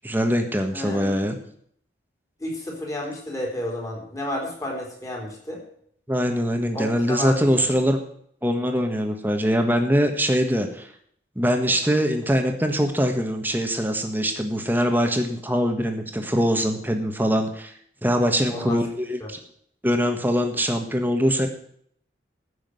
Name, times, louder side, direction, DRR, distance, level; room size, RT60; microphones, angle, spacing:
voice 1, 0.0-1.4 6.1-8.0 8.4-10.9 11.3-17.7 18.0-19.4 19.8-21.5, equal, 10° right, 5 dB, 1.5 m, -23 dB
voice 2, 0.7-1.2 2.4-5.6 6.7-7.6 18.4-18.8 19.2-19.3, left 1 dB, 15° left, -1 dB, 3.7 m, -31 dB
15.0 x 6.5 x 7.8 m, 0.66 s
head